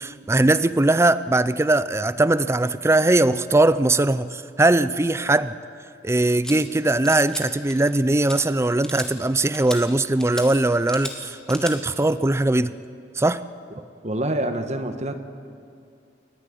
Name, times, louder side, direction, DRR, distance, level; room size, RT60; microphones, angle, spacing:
voice 1, 0.0-5.6 6.0-12.7 13.2-13.4, right 2 dB, 15° right, 14 dB, 0.5 m, -20 dB
sound 1, 6.4-6.6 7.0-7.4 7.7-8.0 8.3-8.4 8.8-9.1 9.5-9.8 10.2-10.5 10.9-11.1 11.5-11.8, left 1 dB, 5° left, 2.1 m, -34 dB
voice 2, 13.8-15.2, right 1 dB, 40° right, 8 dB, 1.3 m, -27 dB
29.5 x 11.5 x 9.7 m, 2.4 s
head